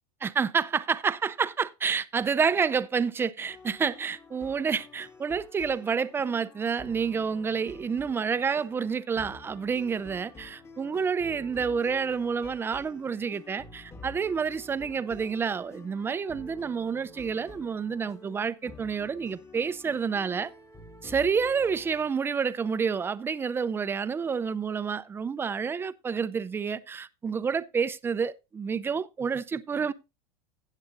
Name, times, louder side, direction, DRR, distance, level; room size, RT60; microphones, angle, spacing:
voice 1, 0.2-20.5 21.0-29.9, right 6 dB, 15° right, 0.4 m, -29 dB
sound 1, 3.5-22.1, left 3 dB, 15° left, 1.1 m, -49 dB
15.5 x 8.2 x 2.5 m
supercardioid pair, 135°, 17 cm